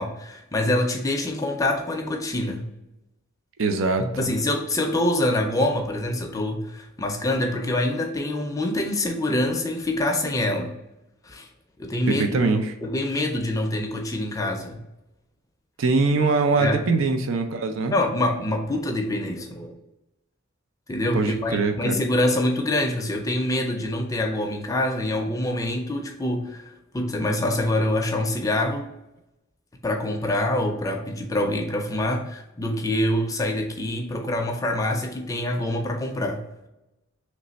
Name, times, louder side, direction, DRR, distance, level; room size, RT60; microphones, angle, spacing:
voice 1, 0.0-2.7 4.2-10.8 11.2-11.5 11.8-12.5 12.8-14.8 16.6-16.8 17.9-19.8 20.9-26.6 26.9-28.9 29.8-36.4, left 1 dB, 15° left, 3 dB, 0.5 m, -25 dB
voice 2, 3.6-4.3 12.1-12.7 15.8-17.9 21.1-21.9, right 3 dB, 75° right, 7 dB, 0.5 m, -22 dB
3.2 x 3.2 x 4.0 m, 0.93 s
head